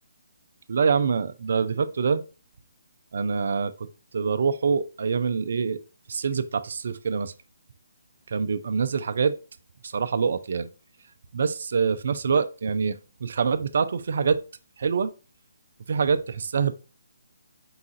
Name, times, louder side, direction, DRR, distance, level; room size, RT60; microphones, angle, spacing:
voice 1, 0.7-2.2 3.1-3.7 4.1-5.8 6.1-7.3 8.3-9.4 9.8-10.7 11.3-14.4 14.8-15.1 15.9-16.7, right 5 dB, 60° right, 0.4 m, -25 dB
4.7 x 2.4 x 4.0 m
hypercardioid pair, 150°, 0 cm